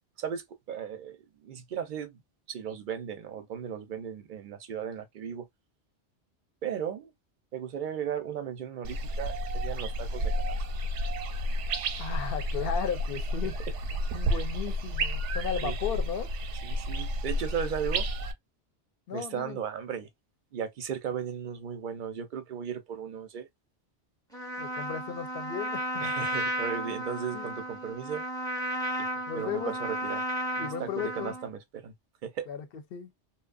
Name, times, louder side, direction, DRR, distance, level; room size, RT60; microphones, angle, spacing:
voice 1, 0.2-2.2 2.5-5.5 6.6-7.1 7.5-10.6 15.6-15.7 16.6-18.1 19.1-20.1 20.5-23.5 26.0-28.2 29.3-30.3 30.6-31.9 32.2-32.5, right 8 dB, 60° right, 0.5 m, -36 dB
sound 1, 8.8-18.3, equal, 90° right, 0.9 m, -31 dB
voice 2, 12.0-13.6 14.1-16.3 19.1-19.6 24.6-26.1 27.3-27.5 29.3-29.7 30.6-31.3 32.5-33.1, left 7 dB, 60° left, 0.8 m, -35 dB
Trumpet, 24.3-31.5, right 1 dB, 5° left, 0.6 m, -34 dB
2.8 x 2.1 x 2.3 m
omnidirectional pair, 1.2 m